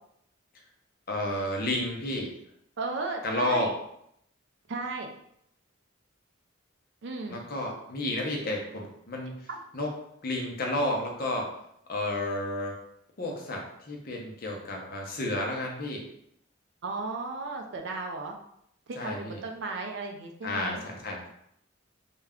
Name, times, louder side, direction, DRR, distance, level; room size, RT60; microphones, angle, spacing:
voice 1, 1.1-2.3 3.2-3.7 7.3-9.3 9.7-9.9 10.2-11.5 11.9-12.7 13.2-16.0 19.0-19.4 20.4-21.3, left 1 dB, 45° left, 0 dB, 0.6 m, -31 dB
voice 2, 2.8-3.7 4.7-5.1 7.0-7.4 9.5-9.6 16.8-18.4 18.9-20.8, right 3 dB, 60° right, 2 dB, 0.4 m, -35 dB
2.3 x 2.1 x 3.4 m, 0.73 s
head